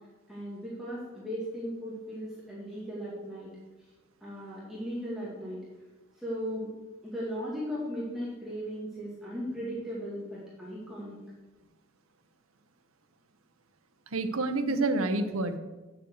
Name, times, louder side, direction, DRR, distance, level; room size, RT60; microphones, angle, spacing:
voice 1, 0.3-3.5 4.2-5.6 6.2-6.7 7.0-11.2, equal, ahead, -8 dB, 2.4 m, -37 dB
voice 2, 14.1-15.6, right 2 dB, 80° right, 7 dB, 0.9 m, -28 dB
9.3 x 7.4 x 6.5 m, 1.2 s
head